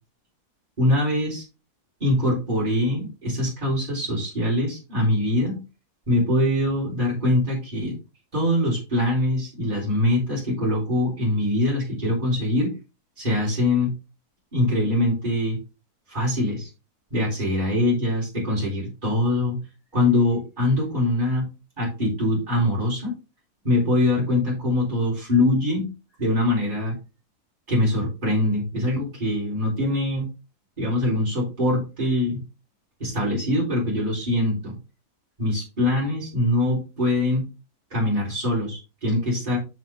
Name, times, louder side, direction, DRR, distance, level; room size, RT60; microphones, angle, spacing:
voice 1, 0.8-1.4 2.0-5.6 6.1-8.0 8.3-12.8 13.2-13.9 14.5-15.6 16.1-16.7 17.1-19.6 19.9-21.5 21.8-23.1 23.6-25.9 26.2-27.0 27.7-30.3 30.8-32.4 33.0-34.7 35.4-37.5 37.9-39.6, left 1 dB, 30° right, -6 dB, 4.1 m, -23 dB
6.8 x 6.2 x 3.6 m, 0.30 s
omnidirectional pair, 1.6 m